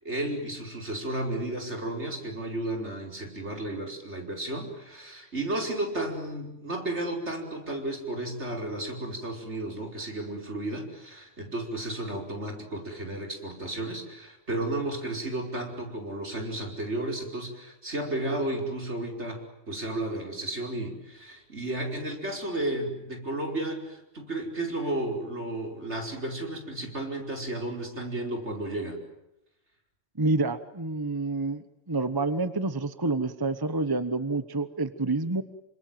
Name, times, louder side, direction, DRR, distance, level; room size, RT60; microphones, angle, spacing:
voice 1, 0.0-29.0, right 1 dB, 65° right, 2 dB, 5.6 m, -33 dB
voice 2, 30.2-35.4, right 3 dB, 20° right, 12 dB, 1.1 m, -28 dB
28.5 x 25.5 x 7.7 m, 0.87 s
omnidirectional pair, 1.2 m